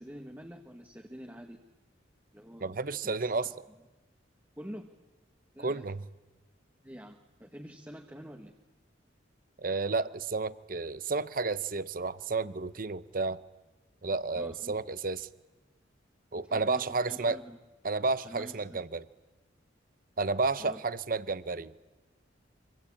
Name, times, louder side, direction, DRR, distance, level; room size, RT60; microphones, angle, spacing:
voice 1, 0.0-1.6 2.3-3.3 4.6-4.9 5.5-5.8 6.8-8.5 14.3-14.8 16.4-17.6 18.2-18.8 20.6-20.8, equal, 10° right, 1.4 m, -47 dB
voice 2, 2.6-3.5 5.6-6.0 9.6-13.4 14.0-15.3 16.3-17.4 17.8-19.1 20.2-21.7, right 3 dB, 45° right, 0.8 m, -31 dB
25.5 x 25.0 x 8.6 m
head